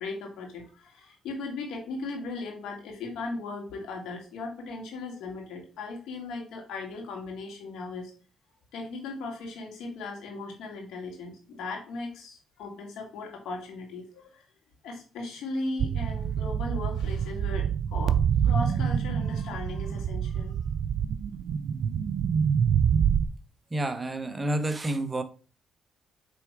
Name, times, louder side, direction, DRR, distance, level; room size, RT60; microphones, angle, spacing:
voice 1, 0.0-8.1 8.7-14.5 14.8-20.6, left 3 dB, 85° left, 2.5 m, -37 dB
sound 1, 15.8-23.2, right 8 dB, 70° right, 0.5 m, -26 dB
voice 2, 23.7-25.2, right 1 dB, 20° right, 1.0 m, -29 dB
8.4 x 3.5 x 4.7 m
cardioid pair, 90°, 0 cm